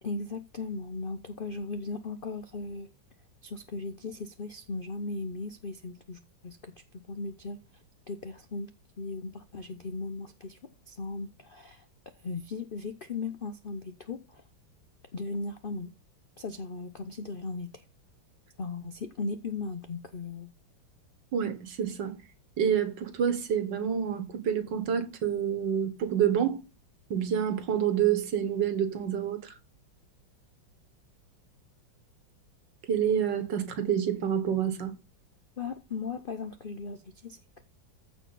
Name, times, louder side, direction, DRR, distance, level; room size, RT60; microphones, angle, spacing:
voice 1, 0.0-2.9 3.4-8.7 9.0-10.6 10.9-11.9 12.2-14.4 15.1-15.9 16.4-17.8 18.6-20.5 35.6-37.6, left 3 dB, 60° left, 0.5 m, -37 dB
voice 2, 21.3-22.2 22.6-26.6 27.1-29.5 32.9-35.0, right 8 dB, 70° right, 1.9 m, -28 dB
14.5 x 4.9 x 4.0 m
omnidirectional pair, 2.1 m